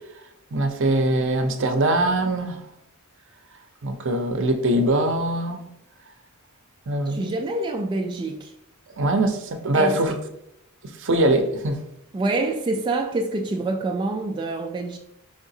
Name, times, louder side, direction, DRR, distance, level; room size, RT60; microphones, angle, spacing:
voice 1, 0.5-2.6 3.8-5.6 6.9-7.3 9.0-10.2 11.0-11.8, right 1 dB, 60° right, 0.6 m, -22 dB
voice 2, 7.1-8.5 9.7-10.2 12.1-15.0, right 2 dB, 20° right, 0.3 m, -26 dB
4.7 x 3.6 x 2.7 m
head